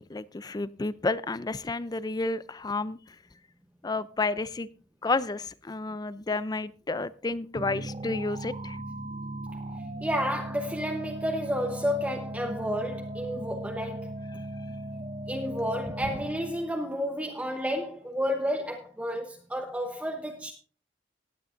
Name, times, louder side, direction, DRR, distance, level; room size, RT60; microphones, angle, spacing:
voice 1, 0.0-3.0 3.8-4.7 5.0-8.8, left 3 dB, 20° left, 0.4 m, -31 dB
sound 1, 7.6-16.8, right 1 dB, 35° right, 0.7 m, -38 dB
voice 2, 10.0-14.1 15.3-20.5, equal, 10° right, 1.0 m, -31 dB
18.0 x 9.6 x 2.6 m
head